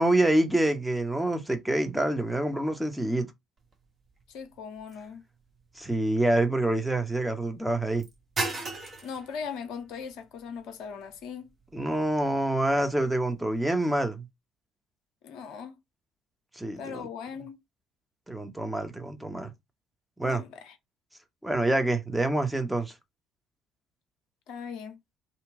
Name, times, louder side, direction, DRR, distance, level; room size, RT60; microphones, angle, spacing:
voice 1, 0.0-3.3 5.8-8.0 11.7-14.3 16.5-17.1 18.3-19.5 20.2-20.4 21.4-22.9, right 1 dB, 5° right, 0.8 m, -26 dB
sound 1, 3.6-13.7, right 3 dB, 35° right, 1.0 m, -41 dB
voice 2, 4.3-5.2 9.0-11.5 15.2-15.8 16.8-17.6 20.2-20.8 24.5-25.0, left 6 dB, 60° left, 0.6 m, -39 dB
2.8 x 2.3 x 3.5 m
figure-of-eight pair, 50°, 0 cm